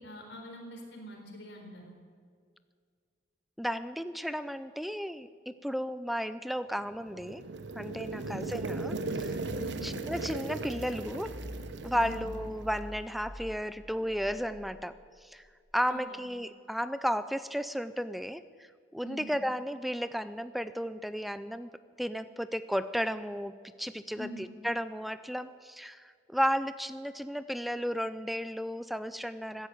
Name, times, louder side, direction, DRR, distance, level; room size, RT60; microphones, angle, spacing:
voice 1, 0.0-1.9 8.1-8.5 9.6-9.9 11.9-12.2 15.9-16.2 19.0-19.3 24.1-24.4, equal, 75° left, 1 dB, 4.1 m, -45 dB
voice 2, 3.6-7.4 7.8-9.4 9.8-11.4 11.8-15.4 15.7-18.4 18.9-21.7 22.0-29.7, equal, ahead, 13 dB, 0.4 m, -34 dB
sound 1, 6.9-13.0, right 3 dB, 80° right, 1.0 m, -37 dB
sound 2, 9.4-15.7, equal, 25° left, 5.2 m, -47 dB
15.5 x 10.0 x 9.1 m, 2.1 s
head